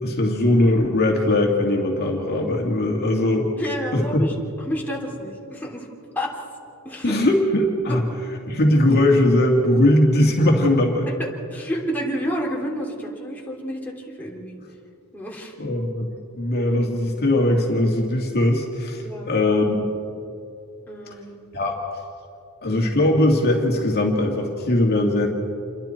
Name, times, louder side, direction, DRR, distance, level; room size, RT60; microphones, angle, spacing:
voice 1, 0.0-3.5 3.9-4.3 7.0-8.0 8.5-11.1 15.6-19.8 21.5-21.8 22.6-25.3, left 1 dB, 45° left, 0 dB, 2.3 m, -20 dB
voice 2, 3.6-5.9 6.1-6.3 6.8-7.2 11.2-14.6 15.1-15.5 19.0-19.3 20.9-21.4, equal, 10° left, -3 dB, 3.0 m, -30 dB
28.0 x 22.5 x 4.5 m, 2.6 s
head